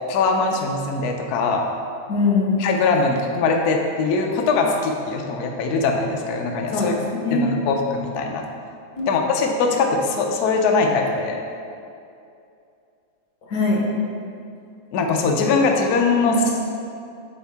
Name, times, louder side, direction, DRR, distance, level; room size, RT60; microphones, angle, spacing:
voice 1, 0.1-1.7 2.6-6.9 7.3-8.4 9.1-11.4 14.9-16.4, left 4 dB, 85° left, 2 dB, 0.8 m, -21 dB
voice 2, 2.1-2.6 6.7-7.4 8.9-9.1 13.5-14.0 16.2-16.5, left 3 dB, 55° left, -3 dB, 1.5 m, -22 dB
8.1 x 3.6 x 3.5 m, 2.5 s
omnidirectional pair, 2.3 m